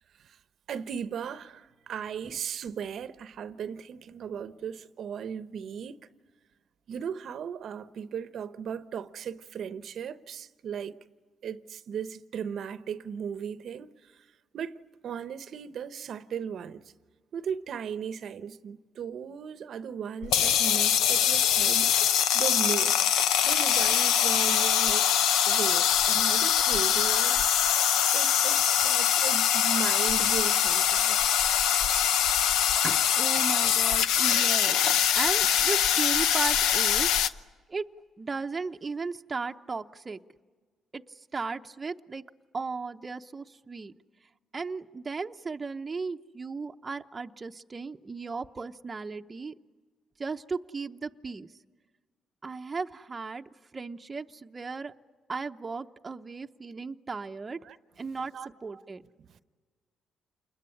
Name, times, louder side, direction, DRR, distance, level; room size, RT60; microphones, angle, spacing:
voice 1, 0.7-6.0 6.9-10.9 11.4-13.9 14.5-14.8 15.0-16.8 17.3-21.9 22.3-23.0 23.5-25.1 25.5-27.4 28.1-31.3 57.6-57.8 58.2-58.5, right 7 dB, 65° right, 0.9 m, -36 dB
sound 1, 20.2-37.3, left 9 dB, 90° left, 0.8 m, -23 dB
voice 2, 32.8-34.8 35.1-37.1 37.7-37.9 38.2-40.2 40.9-41.0 41.3-42.2 42.5-43.9 44.5-49.5 50.2-51.5 52.4-53.4 53.7-54.9 55.3-57.6 58.0-58.3 58.6-59.0, right 4 dB, 30° right, 0.8 m, -35 dB
28.0 x 21.5 x 9.9 m
cardioid pair, 90°, 0 cm